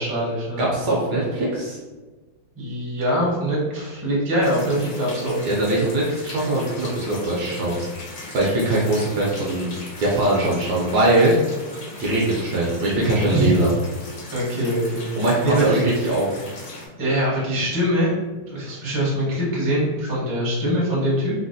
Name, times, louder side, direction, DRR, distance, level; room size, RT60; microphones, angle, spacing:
voice 1, 0.0-0.6 2.6-5.4 13.3-13.5 14.3-15.1 15.4-15.8 17.0-18.1 18.5-21.3, right 1 dB, 25° right, -7 dB, 0.4 m, -23 dB
voice 2, 0.6-1.8 5.4-7.9 8.3-9.7 10.0-11.3 12.0-13.7 15.2-16.3, right 2 dB, 70° right, -4 dB, 1.0 m, -21 dB
sound 1, 4.4-16.9, left 2 dB, 65° left, 0.8 m, -39 dB
4.0 x 2.1 x 2.6 m, 1.2 s
omnidirectional pair, 2.2 m